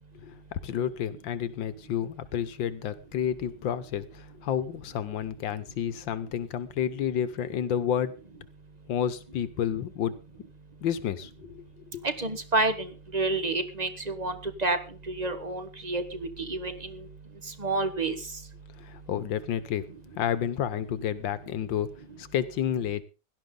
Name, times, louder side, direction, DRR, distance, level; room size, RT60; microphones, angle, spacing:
voice 1, 0.2-8.1 8.9-10.1 10.8-12.0 18.8-19.9 20.2-21.9 22.2-23.0, left 9 dB, 90° left, 14 dB, 1.8 m, -30 dB
voice 2, 12.0-17.1 17.4-18.4, right 2 dB, 25° right, 10 dB, 1.3 m, -30 dB
17.0 x 12.0 x 3.9 m, 0.32 s
omnidirectional pair, 2.0 m